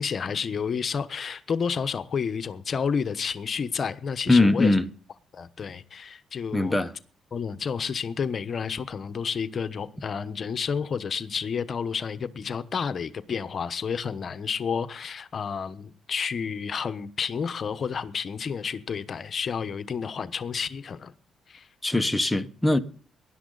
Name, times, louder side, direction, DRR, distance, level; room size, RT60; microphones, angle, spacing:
voice 1, 0.0-4.8 5.3-6.8 7.3-21.1 21.5-21.7, left 6 dB, 45° left, 1.0 m, -30 dB
voice 2, 4.3-4.9 6.5-6.9 21.8-22.8, left 2 dB, 10° left, 1.1 m, -21 dB
19.0 x 11.5 x 4.0 m
cardioid pair, 90°, 0 cm